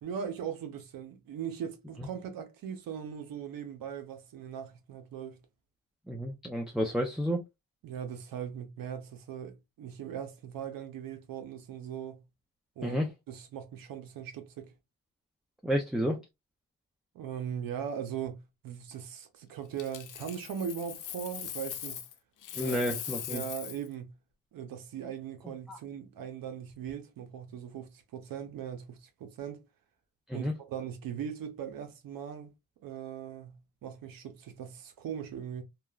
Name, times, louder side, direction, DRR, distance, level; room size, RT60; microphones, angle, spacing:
voice 1, 0.0-5.4 7.8-12.2 12.8-13.0 13.3-14.7 17.1-22.1 22.5-22.8 23.3-24.2 24.5-29.6 30.3-32.5 32.8-35.6, right 8 dB, 90° right, 0.7 m, -39 dB
voice 2, 6.1-7.4 12.8-13.1 15.6-16.2 22.6-23.4 25.7-25.8 30.3-30.5, equal, ahead, 0.4 m, -30 dB
Coin (dropping), 19.8-22.1 22.4-23.9 26.7-26.9, left 10 dB, 65° left, 0.5 m, -40 dB
2.9 x 2.2 x 2.3 m
cardioid pair, 70°, 33 cm